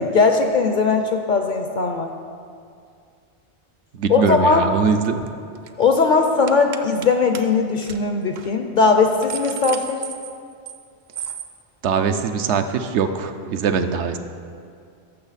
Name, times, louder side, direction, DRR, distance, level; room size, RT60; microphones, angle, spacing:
voice 1, 0.0-2.1 4.1-4.6 5.8-10.0, left 4 dB, 55° left, 5 dB, 0.6 m, -19 dB
voice 2, 3.9-5.3 11.8-14.2, right 6 dB, 75° right, 8 dB, 0.9 m, -22 dB
sound 1, 5.0-5.3 5.5-5.8 6.5-7.1 7.3-7.4 7.8-8.0 8.4-8.5 8.9-10.8 11.1-11.5, right 8 dB, 60° right, 0.5 m, -33 dB
13.5 x 6.2 x 4.1 m, 2.3 s
omnidirectional pair, 1.2 m